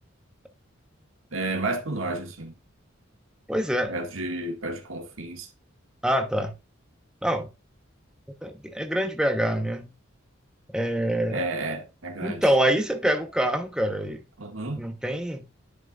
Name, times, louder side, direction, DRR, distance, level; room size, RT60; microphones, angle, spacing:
voice 1, 1.3-2.5 3.9-5.5 11.3-12.4 14.4-14.8, right 2 dB, 80° right, 1.8 m, -31 dB
voice 2, 3.5-3.9 6.0-6.5 7.2-7.5 8.4-9.9 10.7-11.5 12.2-14.2 14.8-15.4, right 1 dB, 5° right, 0.8 m, -25 dB
11.0 x 5.7 x 2.4 m
head